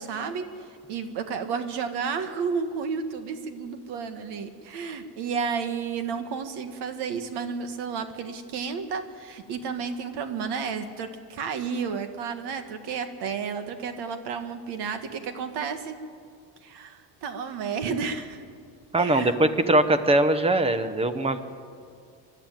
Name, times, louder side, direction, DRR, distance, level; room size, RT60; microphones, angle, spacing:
voice 1, 0.0-16.0 16.6-18.4 19.0-19.4, right 6 dB, 60° right, 9 dB, 1.6 m, -32 dB
voice 2, 18.9-21.4, right 1 dB, 15° right, 11 dB, 0.9 m, -21 dB
25.5 x 12.0 x 9.1 m, 2.2 s
cardioid pair, 160°, 45 cm